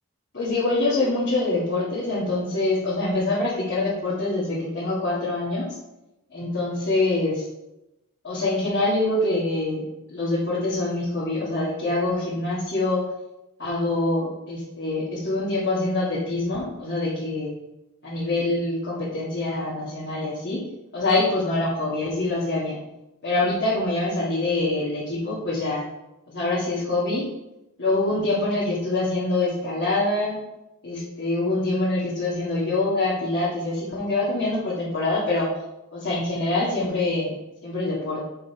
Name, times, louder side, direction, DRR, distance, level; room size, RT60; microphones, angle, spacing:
voice 1, 0.3-5.7 6.3-7.4 8.2-9.8 10.1-13.0 13.6-17.5 18.0-20.6 20.9-22.8 23.2-25.9 26.3-27.3 27.8-30.4 30.8-35.5 35.9-37.3 37.6-38.2, left 2 dB, 50° left, -9 dB, 2.4 m, -25 dB
7.4 x 5.4 x 4.5 m, 0.93 s
head